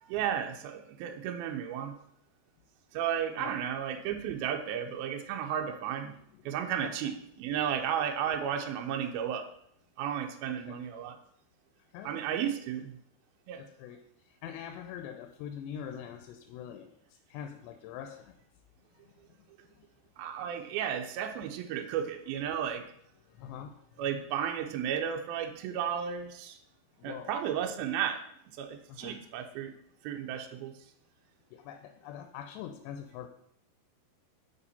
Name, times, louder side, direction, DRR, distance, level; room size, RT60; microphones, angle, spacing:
voice 1, 0.0-2.0 2.9-6.2 6.5-9.5 10.0-11.2 12.0-13.0 13.5-13.6 20.2-22.9 24.0-26.6 27.0-28.2 28.5-29.7 30.0-30.7, right 9 dB, 85° right, 4 dB, 2.2 m, -33 dB
voice 2, 6.3-7.1 10.4-10.8 11.9-12.4 13.6-17.0 17.3-18.3 19.3-19.4 19.8-19.9 23.3-24.0 27.0-27.3 28.9-29.3 31.5-33.3, left 9 dB, 85° left, 7 dB, 2.7 m, -44 dB
7.0 x 5.5 x 4.1 m, 0.70 s
omnidirectional pair, 4.9 m